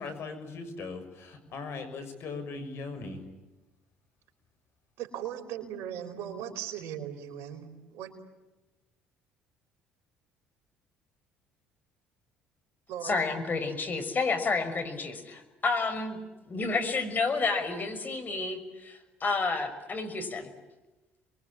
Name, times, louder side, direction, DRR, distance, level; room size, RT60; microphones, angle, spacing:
voice 1, 0.0-3.2, left 4 dB, 60° left, 8 dB, 6.5 m, -39 dB
voice 2, 5.0-8.1 12.9-13.2, right 10 dB, 70° right, 5 dB, 4.6 m, -38 dB
voice 3, 13.0-16.2 16.5-20.5, left 4 dB, 35° left, 8 dB, 6.1 m, -30 dB
29.0 x 22.5 x 8.7 m, 1.1 s
hypercardioid pair, 65°, 5 cm